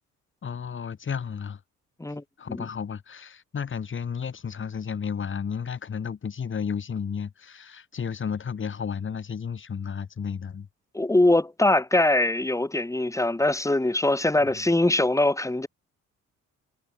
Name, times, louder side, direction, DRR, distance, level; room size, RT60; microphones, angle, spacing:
voice 1, 0.4-1.6 2.4-10.7 14.5-14.6, left 6 dB, 40° left, 2.3 m, -32 dB
voice 2, 10.9-15.7, left 2 dB, 10° left, 2.1 m, -22 dB
cardioid pair, 90°, 30 cm